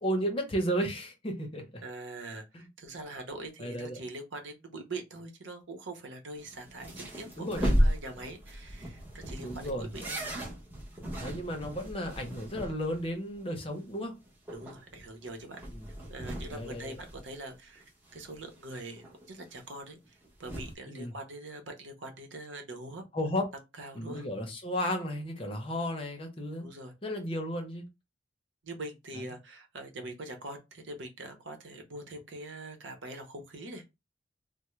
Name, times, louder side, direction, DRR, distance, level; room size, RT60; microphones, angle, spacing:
voice 1, 0.0-1.8 2.5-2.7 3.6-4.0 7.4-7.7 9.4-9.9 11.2-14.1 15.7-15.9 16.5-17.0 20.9-21.1 23.1-23.4 23.9-26.7 27.0-27.8 29.1-29.3, equal, 30° left, 0.8 m, -34 dB
voice 2, 1.8-10.4 14.5-15.6 16.1-16.9 17.2-17.8 18.1-23.0 23.8-24.2 26.6-26.9 28.6-33.9, right 2 dB, 80° right, 0.8 m, -43 dB
sound 1, 6.4-13.1 13.3-13.4 13.8-13.9 14.3-17.8 18.1-19.3 20.1-20.7, equal, 10° right, 0.8 m, -34 dB
3.4 x 2.1 x 3.1 m
head